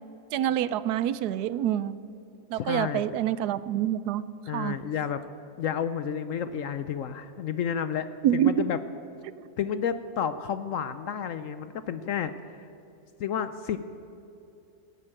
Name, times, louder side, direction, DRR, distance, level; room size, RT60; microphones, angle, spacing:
voice 1, 0.3-2.0 2.5-4.2 4.5-4.8 8.2-8.7, right 11 dB, 85° right, 16 dB, 1.1 m, -26 dB
voice 2, 2.5-3.1 4.5-5.2 5.6-8.8 9.6-12.7 13.2-13.8, left 8 dB, 65° left, 12 dB, 0.9 m, -31 dB
15.0 x 11.0 x 8.8 m, 2.7 s
omnidirectional pair, 1.7 m